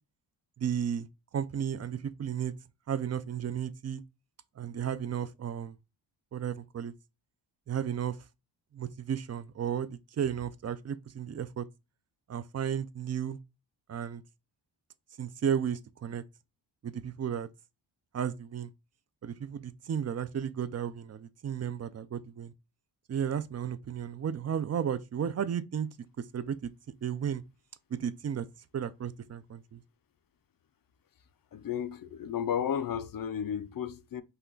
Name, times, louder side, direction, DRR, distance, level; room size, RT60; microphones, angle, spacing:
voice 1, 0.6-1.1 1.3-2.5 2.9-4.0 4.6-5.8 6.3-6.9 7.7-8.2 8.7-11.7 12.3-13.4 13.9-14.2 15.2-16.2 16.8-17.5 18.1-18.7 19.2-22.5 23.1-25.9 26.2-26.7 27.0-27.4 27.9-28.5 28.7-29.8, right 8 dB, 35° right, 0.4 m, -33 dB
voice 2, 31.5-34.2, left 8 dB, 50° left, 0.5 m, -33 dB
5.7 x 2.3 x 3.7 m
wide cardioid pair, 145°, 45 cm